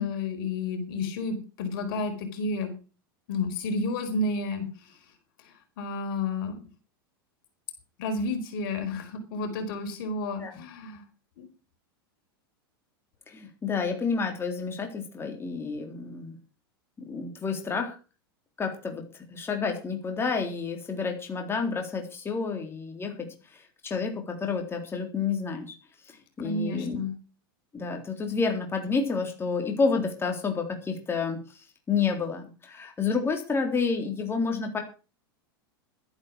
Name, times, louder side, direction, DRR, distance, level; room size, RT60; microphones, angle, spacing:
voice 1, 0.0-2.7 3.3-4.7 5.8-6.6 8.0-11.0 11.4-11.5 26.4-27.1, left 2 dB, 65° left, 6 dB, 4.6 m, -31 dB
voice 2, 13.3-16.4 17.0-18.0 18.6-23.1 23.5-25.7 26.4-27.0 27.7-34.8, left 5 dB, 20° left, 3 dB, 3.7 m, -30 dB
12.5 x 10.5 x 6.3 m, 0.35 s
hypercardioid pair, 105°, 12 cm